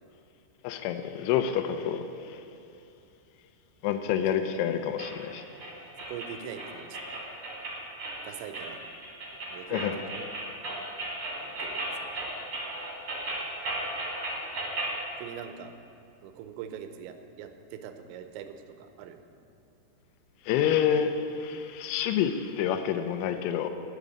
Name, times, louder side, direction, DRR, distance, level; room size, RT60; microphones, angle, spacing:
voice 1, 0.6-2.4 3.8-5.4 9.7-10.0 20.5-23.7, left 9 dB, 85° left, 8 dB, 3.1 m, -28 dB
sound 1, 5.0-15.0, right 1 dB, 35° right, 2.0 m, -36 dB
voice 2, 6.1-7.2 8.2-8.8 9.5-10.3 10.7-10.8 11.4-12.3 15.2-15.7 16.2-19.2, right 8 dB, 80° right, 7 dB, 2.9 m, -43 dB
9.1 x 8.5 x 9.3 m, 2.7 s
omnidirectional pair, 5.4 m